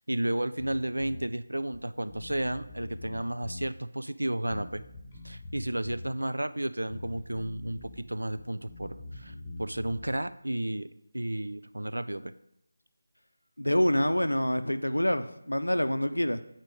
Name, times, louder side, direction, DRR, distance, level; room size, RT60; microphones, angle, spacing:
voice 1, 0.1-4.8 5.2-10.9 11.1-12.3, right 1 dB, 75° right, 12 dB, 0.4 m, -32 dB
Bass guitar, 0.6-1.3 1.7-1.8 2.1-3.7 4.5-6.1 6.9-8.0 8.3-10.2, left 2 dB, 25° left, 1.2 m, -43 dB
voice 2, 13.6-16.4, equal, 85° left, 11 dB, 0.5 m, -26 dB
7.8 x 4.4 x 4.6 m, 0.79 s
figure-of-eight pair, 160°, 0 cm